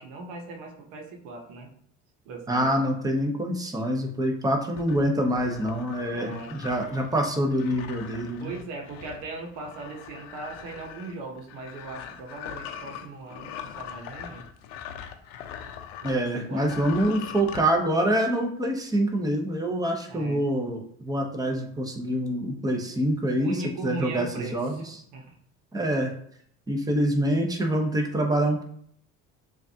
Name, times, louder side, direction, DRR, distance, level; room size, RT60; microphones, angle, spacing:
voice 1, 0.0-1.7 2.2-2.8 6.1-6.6 8.4-14.4 16.1-16.7 20.1-20.4 22.4-22.5 22.9-23.0 23.4-24.8 25.1-25.4, right 3 dB, 90° right, 2 dB, 1.0 m, -39 dB
voice 2, 2.5-8.5 16.0-25.0 25.7-26.1 26.7-28.6, right 1 dB, 10° right, 2 dB, 0.9 m, -26 dB
sound 1, 4.8-16.2 16.5-17.6, left 9 dB, 90° left, 0.6 m, -41 dB
6.8 x 2.5 x 2.8 m, 0.66 s
supercardioid pair, 85°, 35 cm